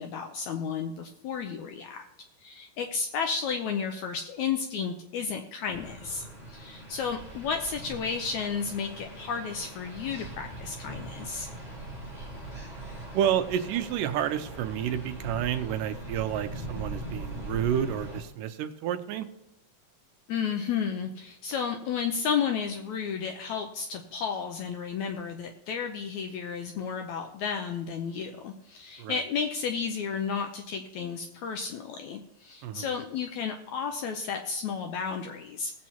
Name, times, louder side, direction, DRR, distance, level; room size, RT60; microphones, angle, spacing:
voice 1, 0.0-2.1 2.4-11.5 20.3-35.7, left 6 dB, 75° left, 5 dB, 1.8 m, -32 dB
sound 1, 5.7-18.2, right 1 dB, 10° right, 3.5 m, -41 dB
voice 2, 13.1-19.3 29.0-29.2 32.6-32.9, right 10 dB, 80° right, 8 dB, 2.2 m, -30 dB
19.5 x 7.5 x 2.9 m, 0.88 s
omnidirectional pair, 4.0 m